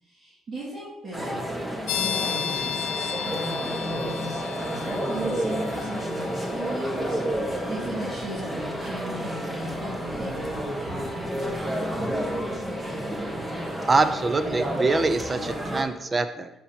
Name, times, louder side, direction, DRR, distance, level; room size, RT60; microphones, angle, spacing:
voice 1, 0.0-1.4 1.9-4.4 4.6-11.6, right 1 dB, 45° right, -7 dB, 2.0 m, -37 dB
sound 1, 1.1-15.8, right 1 dB, 15° right, 1.3 m, -30 dB
sound 2, 1.9-14.4, left 9 dB, 85° left, 0.5 m, -37 dB
voice 2, 13.9-16.5, right 3 dB, 30° right, 11 dB, 0.6 m, -24 dB
7.3 x 6.9 x 2.8 m, 0.94 s
supercardioid pair, 75°, 0 cm